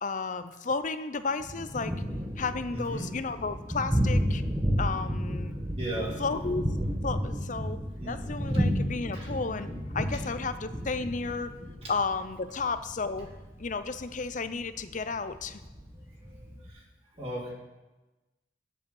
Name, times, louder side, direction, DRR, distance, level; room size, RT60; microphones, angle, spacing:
voice 1, 0.0-2.0 2.4-4.4 4.8-5.5 6.2-6.6 7.0-7.8 8.1-11.5 11.9-13.3 13.6-15.6, left 4 dB, 45° left, 11 dB, 0.7 m, -33 dB
Thunder, 1.4-16.7, equal, 15° right, 1.4 m, -32 dB
voice 2, 2.7-3.1 5.8-6.2 8.0-8.2 9.1-9.3 17.2-17.5, right 1 dB, 35° right, -3 dB, 2.8 m, -35 dB
10.0 x 7.9 x 7.1 m, 1.1 s
head